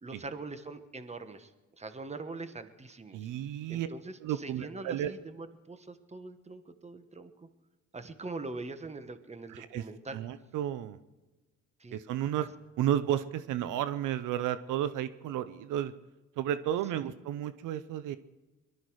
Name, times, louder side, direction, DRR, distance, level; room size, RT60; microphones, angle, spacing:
voice 1, 0.0-1.5 1.8-3.3 3.7-7.5 7.9-10.2 11.8-12.0 12.4-12.5 17.0-17.1, right 3 dB, 20° right, 9 dB, 1.4 m, -43 dB
voice 2, 3.1-3.9 4.2-5.1 9.5-9.8 10.1-11.0 11.9-12.5 12.8-15.9 16.4-18.2, right 11 dB, 85° right, 13 dB, 0.7 m, -32 dB
22.0 x 12.5 x 4.8 m, 1.1 s
cardioid pair, 90°, 30 cm